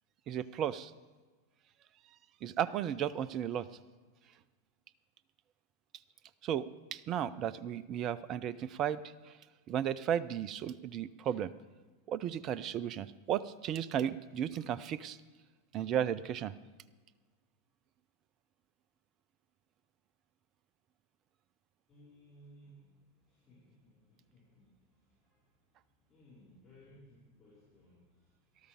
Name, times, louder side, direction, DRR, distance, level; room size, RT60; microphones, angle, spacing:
voice 1, 0.3-0.9 2.4-3.6 6.4-9.0 9.7-11.5 12.1-15.2 15.7-16.5, right 9 dB, 35° right, 17 dB, 0.4 m, -34 dB
voice 2, 21.9-25.6 26.1-28.6, equal, 20° left, -10 dB, 4.7 m, -61 dB
13.5 x 12.5 x 5.0 m, 1.3 s
figure-of-eight pair, 90°, 0 cm